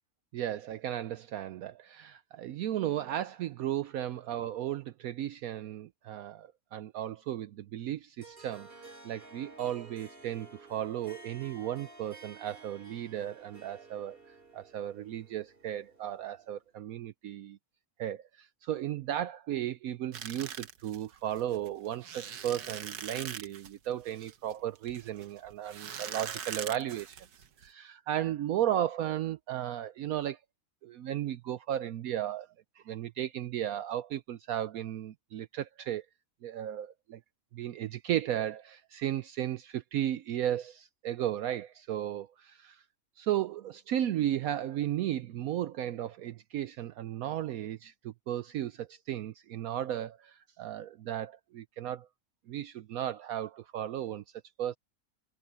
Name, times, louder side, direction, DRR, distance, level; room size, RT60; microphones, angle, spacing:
voice 1, 0.3-17.6 18.0-27.2 27.6-30.4 30.8-32.5 32.8-36.0 36.4-37.2 37.5-42.8 43.2-52.1 52.5-54.2 54.6-54.8, right 11 dB, 70° right, 1.0 m, -35 dB
Harp, 8.2-16.6, right 3 dB, 35° right, 3.8 m, -53 dB
sound 1, 20.1-27.7, right 8 dB, 90° right, 1.7 m, -42 dB
omnidirectional pair, 1.6 m